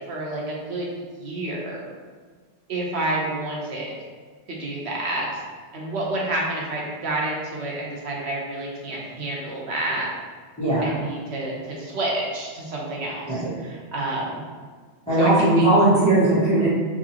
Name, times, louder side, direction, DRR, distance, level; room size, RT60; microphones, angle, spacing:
voice 1, 0.0-1.9 2.7-3.9 4.5-5.3 5.7-10.1 10.8-14.4 15.2-15.7, right 2 dB, 85° right, -3 dB, 1.2 m, -29 dB
voice 2, 10.6-10.9 13.3-13.5 15.1-16.7, right 2 dB, 5° left, -12 dB, 1.3 m, -18 dB
4.5 x 2.9 x 2.9 m, 1.5 s
omnidirectional pair, 1.1 m